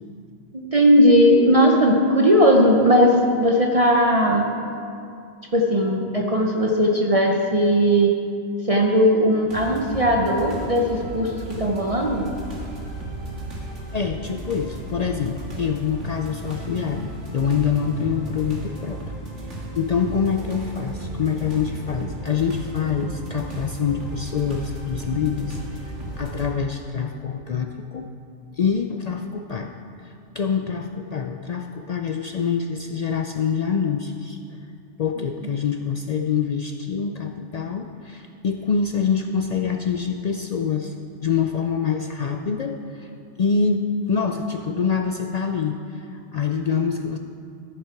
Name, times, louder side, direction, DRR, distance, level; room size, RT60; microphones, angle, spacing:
voice 1, 0.5-4.5 5.5-8.1 8.7-12.3, equal, 35° right, 0 dB, 0.7 m, -18 dB
sound 1, 9.5-26.4, right 2 dB, 90° right, 2.0 m, -35 dB
voice 2, 13.9-19.2 19.8-28.1 28.5-34.4 35.0-40.9 41.2-43.1 43.4-47.2, left 6 dB, 70° left, 4 dB, 0.4 m, -25 dB
14.0 x 6.7 x 4.6 m, 2.5 s
omnidirectional pair, 1.2 m